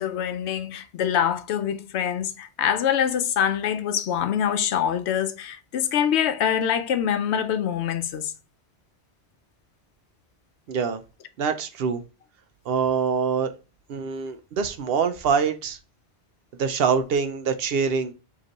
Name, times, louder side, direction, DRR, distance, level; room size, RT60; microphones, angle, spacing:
voice 1, 0.0-8.3, left 9 dB, 80° left, 0.9 m, -25 dB
voice 2, 10.7-11.0 11.4-12.0 12.7-13.5 13.9-15.8 16.6-18.1, right 6 dB, 65° right, 0.8 m, -24 dB
5.1 x 3.0 x 2.9 m
omnidirectional pair, 1.1 m